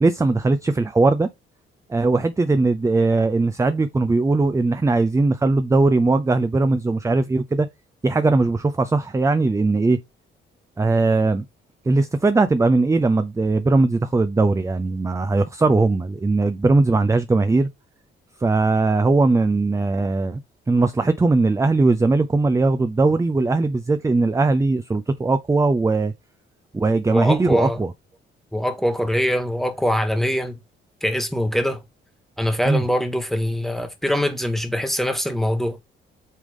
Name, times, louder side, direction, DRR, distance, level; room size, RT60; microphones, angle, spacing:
voice 1, 0.0-1.3 1.9-7.7 8.0-10.0 10.8-11.4 11.9-17.7 18.4-20.4 20.7-26.1 26.7-27.9 32.7-32.8, right 3 dB, 15° right, 0.6 m, -19 dB
voice 2, 27.1-27.8 28.5-30.6 31.0-31.8 32.4-35.8, equal, ahead, 1.7 m, -23 dB
8.2 x 3.5 x 3.7 m
cardioid pair, 90°, 20 cm